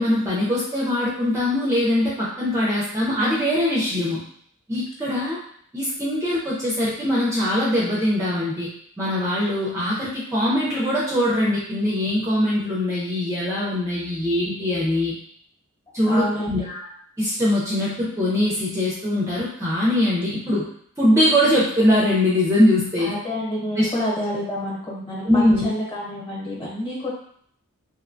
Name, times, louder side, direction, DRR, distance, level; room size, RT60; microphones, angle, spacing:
voice 1, 0.0-4.2 4.7-5.4 5.7-8.7 9.0-15.1 15.9-16.8 17.2-20.7 21.0-23.1 23.8-23.9 25.2-25.7, left 1 dB, 15° right, -6 dB, 0.4 m, -22 dB
voice 2, 16.1-16.7 23.0-27.1, left 1 dB, 25° left, -5 dB, 0.9 m, -28 dB
2.7 x 2.1 x 2.5 m, 0.63 s
head